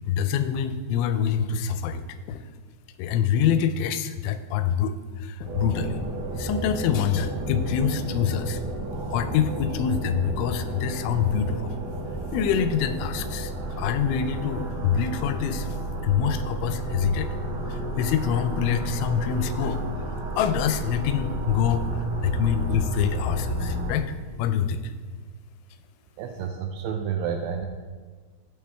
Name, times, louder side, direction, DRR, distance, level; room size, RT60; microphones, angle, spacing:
voice 1, 0.1-2.0 2.3-2.4 3.0-4.9 5.2-6.0 6.4-8.6 9.1-11.8 12.3-13.5 13.8-15.7 16.0-17.3 17.7-19.8 20.4-21.9 22.2-24.1 24.4-24.8, left 8 dB, 90° left, 10 dB, 3.0 m, -25 dB
sound 1, 5.4-23.9, right 1 dB, 55° right, 2.4 m, -32 dB
voice 2, 26.2-27.7, right 7 dB, 85° right, 4 dB, 2.4 m, -30 dB
13.5 x 6.2 x 3.4 m, 1.5 s
omnidirectional pair, 5.3 m